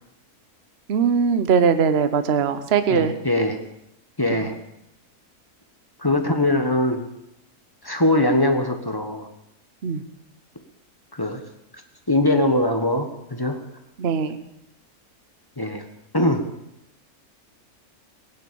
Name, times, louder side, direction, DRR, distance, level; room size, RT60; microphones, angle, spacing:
voice 1, 0.9-3.1 4.4-4.5 9.8-10.0 14.0-14.4, right 6 dB, 45° right, 10 dB, 1.1 m, -20 dB
voice 2, 2.9-3.6 4.2-4.6 6.0-7.0 7.8-9.3 11.1-11.4 12.1-13.6 15.6-15.8 16.1-16.5, left 1 dB, 15° left, 5 dB, 1.3 m, -21 dB
18.5 x 9.5 x 7.0 m, 0.83 s
omnidirectional pair, 1.6 m